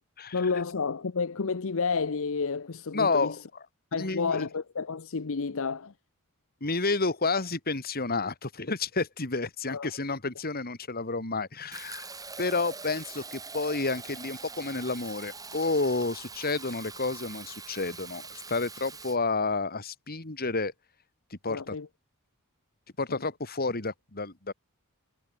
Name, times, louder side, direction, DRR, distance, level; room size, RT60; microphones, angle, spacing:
voice 1, 0.3-3.4 3.9-5.9 9.7-9.9 21.5-21.9 23.1-23.2, left 5 dB, 65° left, 0.8 m, -30 dB
voice 2, 2.9-3.4 3.9-4.5 6.6-12.1 12.4-20.7 21.3-21.7 23.0-24.5, left 3 dB, 45° left, 2.6 m, -30 dB
Fill (with liquid), 11.7-19.2, right 4 dB, 15° right, 4.0 m, -43 dB
head